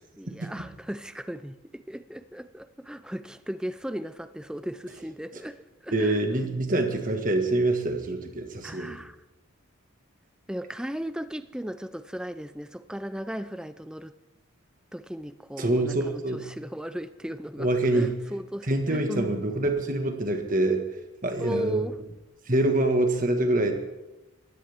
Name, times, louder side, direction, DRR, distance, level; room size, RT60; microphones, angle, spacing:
voice 1, 0.2-6.2 8.6-9.2 10.5-14.2 14.9-19.4 21.4-22.0, equal, 5° right, 0.5 m, -36 dB
voice 2, 5.9-9.0 15.6-16.5 17.6-18.2 18.7-20.9 21.2-21.8 22.5-23.7, right 2 dB, 40° right, 1.8 m, -25 dB
21.0 x 16.5 x 3.6 m
head